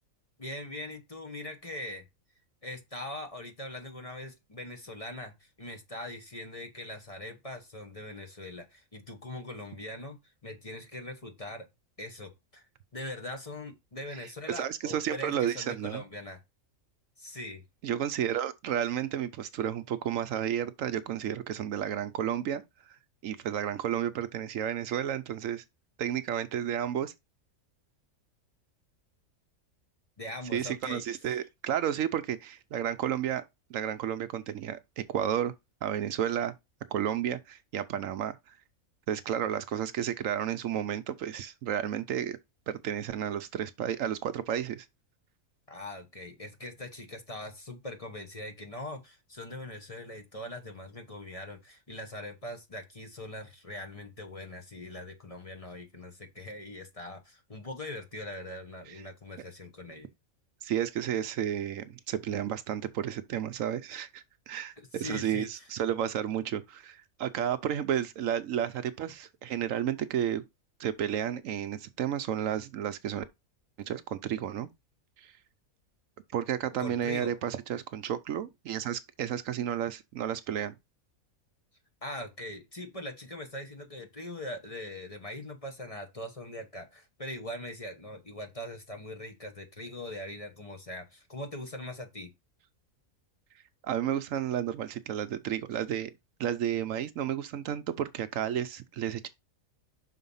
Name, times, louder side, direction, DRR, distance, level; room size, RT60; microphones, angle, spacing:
voice 1, 0.4-2.1 2.6-11.7 12.0-12.6 12.9-16.4 17.2-17.6 30.2-31.0 31.3-31.4 45.7-60.1 64.8-65.7 76.8-77.4 82.0-92.3, left 1 dB, 25° left, 1.3 m, -41 dB
voice 2, 14.1-16.0 17.8-23.0 23.2-25.6 26.0-27.1 30.5-33.4 33.7-35.5 35.8-36.5 36.9-38.4 39.1-42.4 42.7-44.9 58.9-59.0 60.6-70.4 70.8-73.2 73.8-74.7 75.2-75.3 76.3-80.7 93.8-96.1 96.4-99.3, right 10 dB, 75° right, 1.0 m, -32 dB
5.8 x 4.5 x 5.5 m
omnidirectional pair, 1.4 m